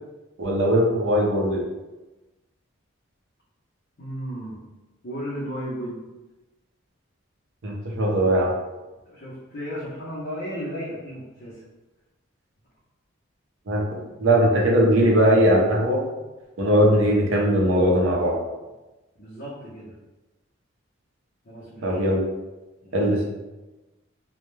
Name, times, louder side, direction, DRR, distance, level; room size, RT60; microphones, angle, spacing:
voice 1, 0.4-1.6 7.6-8.5 13.7-13.8 14.2-16.0 16.6-18.4 21.8-22.2 22.9-23.2, equal, 70° right, -2 dB, 0.6 m, -19 dB
voice 2, 4.0-4.6 5.0-6.1 9.1-11.6 19.2-19.9 21.4-22.0 22.8-23.0, equal, 50° left, -9 dB, 0.6 m, -34 dB
2.2 x 2.1 x 3.0 m, 1.1 s
head